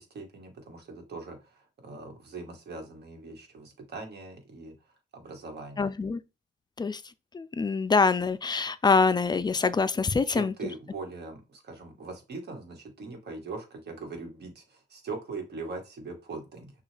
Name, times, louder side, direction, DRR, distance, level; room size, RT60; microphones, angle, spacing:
voice 1, 0.0-4.7 5.1-5.9 10.3-16.7, right 3 dB, 55° right, 1.6 m, -41 dB
voice 2, 5.8-6.2 6.8-7.0 7.3-10.5, left 4 dB, 20° left, 0.4 m, -25 dB
6.1 x 2.4 x 3.3 m
cardioid pair, 90°, 20 cm